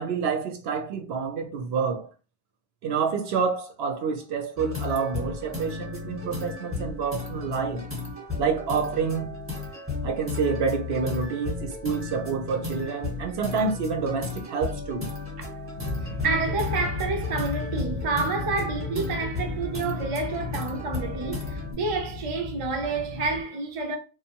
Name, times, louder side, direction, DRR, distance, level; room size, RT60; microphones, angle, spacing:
voice 1, 0.0-2.1 2.8-7.8 8.4-9.3 10.0-15.1, right 5 dB, 70° right, 0.8 m, -28 dB
sound 1, 4.6-21.7, left 4 dB, 15° right, 0.8 m, -34 dB
sound 2, 15.8-23.4, left 2 dB, 50° left, 0.5 m, -35 dB
voice 2, 16.0-24.0, right 3 dB, 50° right, 0.4 m, -29 dB
2.6 x 2.0 x 2.8 m
omnidirectional pair, 1.1 m